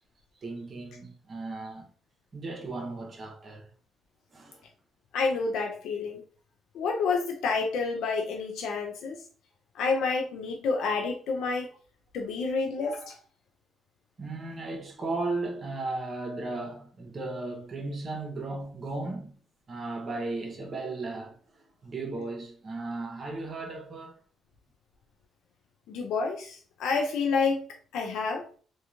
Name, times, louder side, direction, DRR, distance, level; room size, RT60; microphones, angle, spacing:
voice 1, 0.4-1.9 2.3-3.7 4.3-4.6 14.2-19.4 19.7-24.2, right 3 dB, 40° right, 0.8 m, -36 dB
voice 2, 5.1-6.2 6.7-9.2 9.8-11.7 12.1-13.2 25.9-27.6 27.9-28.4, left 4 dB, 80° left, 0.3 m, -29 dB
2.9 x 2.2 x 2.4 m
cardioid pair, 90°, 0 cm